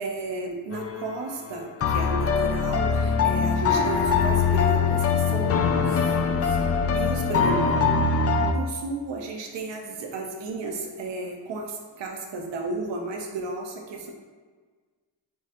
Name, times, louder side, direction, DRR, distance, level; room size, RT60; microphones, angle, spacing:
voice 1, 0.0-6.6 6.9-7.9 8.5-14.1, right 2 dB, 70° right, 2 dB, 0.8 m, -33 dB
sound 1, 0.7-1.2 1.8-8.5, left 5 dB, 35° left, 0.4 m, -23 dB
5.6 x 2.4 x 2.9 m, 1.5 s
cardioid pair, 60°, 46 cm